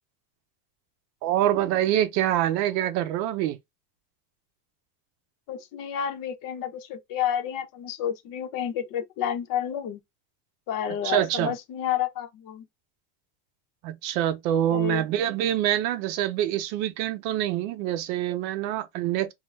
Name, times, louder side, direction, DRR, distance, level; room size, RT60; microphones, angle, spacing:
voice 1, 1.2-3.6 11.0-11.5 13.8-19.3, right 12 dB, 85° right, 0.7 m, -25 dB
voice 2, 5.5-10.0 10.7-12.6 14.7-15.1, left 9 dB, 45° left, 0.6 m, -30 dB
2.4 x 2.0 x 3.1 m
cardioid pair, 145°, 50 cm